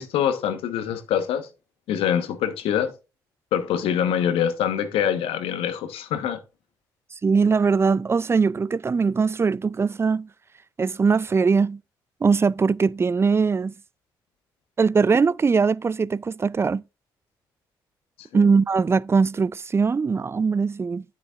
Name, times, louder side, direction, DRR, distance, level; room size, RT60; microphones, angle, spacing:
voice 1, 0.0-1.5 1.9-2.9 3.5-6.4 18.3-18.4, left 9 dB, 75° left, 1.0 m, -24 dB
voice 2, 7.2-10.3 10.8-11.8 12.2-13.7 14.8-16.8 18.3-21.0, right 5 dB, 25° right, 0.3 m, -21 dB
8.8 x 8.4 x 2.3 m
hypercardioid pair, 50°, 10 cm